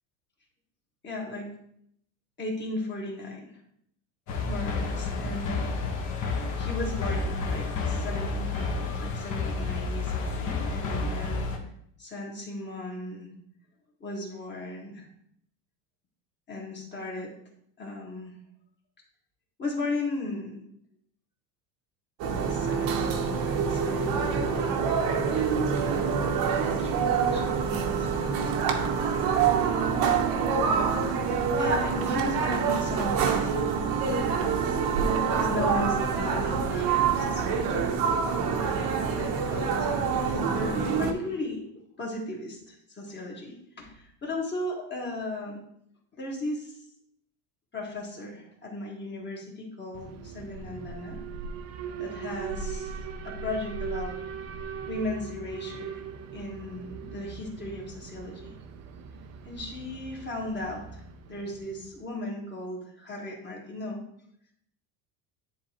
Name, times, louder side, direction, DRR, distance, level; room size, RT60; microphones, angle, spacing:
voice 1, 1.0-1.5 2.4-3.5 4.5-5.7 6.6-11.5 12.0-13.3 14.0-15.0 16.5-17.3 17.8-18.3 19.6-20.6 22.5-24.7 25.8-29.0 31.6-33.8 34.1-34.6 35.3-37.9 38.6-39.9 40.3-41.6 42.0-45.6 46.1-46.8 47.7-51.2 52.0-53.0 53.2-54.2 54.9-56.1 56.3-58.5 59.4-64.0, left 2 dB, 25° left, -2 dB, 1.6 m, -36 dB
sound 1, 4.3-11.6, left 3 dB, 40° left, 1.3 m, -30 dB
sound 2, 22.2-41.1, right 6 dB, 50° right, 1.0 m, -26 dB
Alarm, 49.9-62.0, right 6 dB, 35° right, 0.6 m, -39 dB
10.0 x 3.8 x 2.9 m, 0.71 s
cardioid pair, 140°, 46 cm